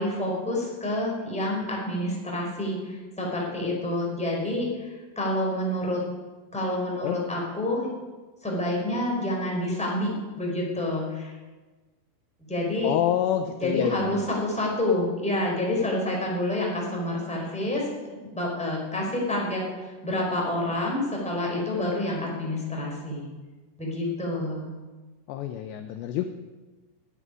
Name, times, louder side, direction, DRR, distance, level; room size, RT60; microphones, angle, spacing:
voice 1, 0.0-6.0 6.5-7.9 8.4-11.4 12.5-12.9 13.6-23.3 23.8-24.7, left 1 dB, ahead, -3 dB, 3.8 m, -28 dB
voice 2, 12.8-14.2 25.3-26.3, left 11 dB, 80° left, 7 dB, 2.6 m, -27 dB
13.0 x 9.5 x 9.8 m, 1.3 s
omnidirectional pair, 5.8 m